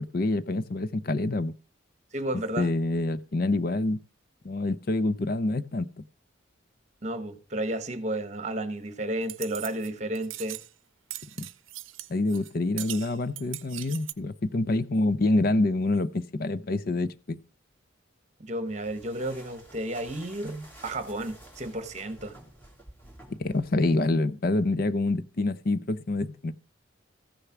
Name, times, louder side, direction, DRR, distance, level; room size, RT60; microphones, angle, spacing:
voice 1, 0.0-1.5 2.6-4.0 4.4-5.9 11.4-11.5 12.1-17.4 23.3-26.5, left 2 dB, 50° left, 0.6 m, -26 dB
voice 2, 2.1-2.7 7.0-10.6 18.4-22.4, right 1 dB, 35° right, 1.2 m, -32 dB
sound 1, 9.2-9.9 10.1-10.7 11.1-12.5 12.8-14.1, right 16 dB, 80° right, 0.6 m, -40 dB
sound 2, 18.7-24.2, right 1 dB, 10° left, 2.8 m, -51 dB
14.5 x 6.6 x 5.9 m
head